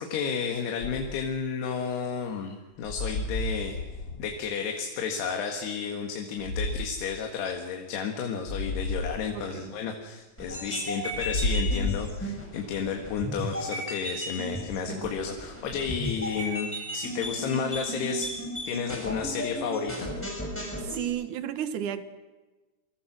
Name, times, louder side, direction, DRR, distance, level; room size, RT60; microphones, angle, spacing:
voice 1, 0.0-3.8 4.2-18.3 18.7-20.1, left 6 dB, 85° left, 3 dB, 3.8 m, -32 dB
sound 1, 0.8-1.3 2.8-4.4 6.4-7.0 8.5-9.2 11.1-12.5, left 2 dB, 35° left, 2.2 m, -31 dB
voice 2, 9.3-9.7 20.8-22.0, right 10 dB, 60° right, 10 dB, 2.5 m, -33 dB
sound 2, 10.4-21.1, equal, 5° left, 6.1 m, -35 dB
28.0 x 24.5 x 6.2 m, 1.2 s
omnidirectional pair, 4.6 m